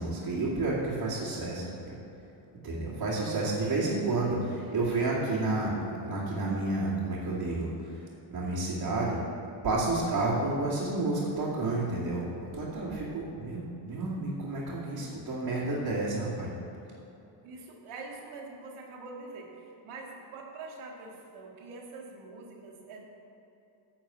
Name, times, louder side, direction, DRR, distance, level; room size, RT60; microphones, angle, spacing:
voice 1, 0.0-2.0 2.6-8.0 8.3-9.2 9.6-16.5, right 2 dB, 50° right, -9 dB, 2.4 m, -30 dB
voice 2, 3.1-3.8 14.9-15.1 17.4-23.0, right 3 dB, 75° right, 0 dB, 1.8 m, -45 dB
10.0 x 4.6 x 7.5 m, 2.8 s
cardioid pair, 100°, 49 cm